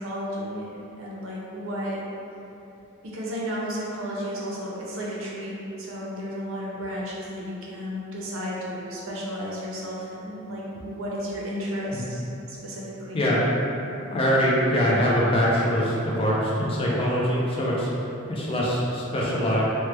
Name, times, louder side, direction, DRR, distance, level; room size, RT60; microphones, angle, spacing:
voice 1, 0.0-2.0 3.0-12.2 12.5-13.2, equal, 60° right, -5 dB, 0.6 m, -33 dB
voice 2, 14.1-17.9 18.3-19.6, equal, 25° left, -5 dB, 0.4 m, -23 dB
2.9 x 2.1 x 3.2 m, 2.9 s
head